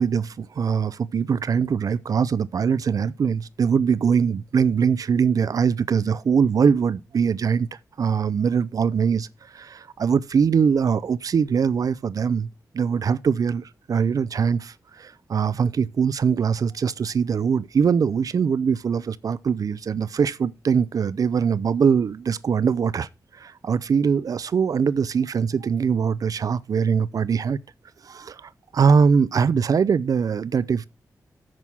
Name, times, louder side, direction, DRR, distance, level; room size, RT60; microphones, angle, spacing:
voice 1, 0.0-7.7 8.0-9.3 9.5-12.5 12.7-23.1 23.4-27.6 28.1-30.9, right 6 dB, 70° right, 0.5 m, -22 dB
7.5 x 6.2 x 7.0 m
cardioid pair, 60°, 6 cm